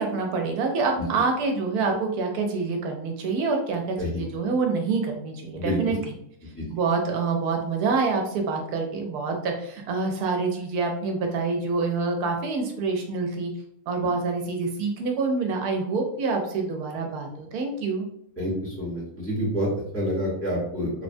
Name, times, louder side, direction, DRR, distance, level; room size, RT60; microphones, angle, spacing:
voice 1, 0.0-6.1 6.7-13.5 13.9-18.1, right 4 dB, 80° right, 3 dB, 1.1 m, -26 dB
voice 2, 18.4-20.9, equal, 10° left, -6 dB, 0.8 m, -28 dB
3.2 x 2.2 x 2.5 m, 0.71 s
omnidirectional pair, 1.6 m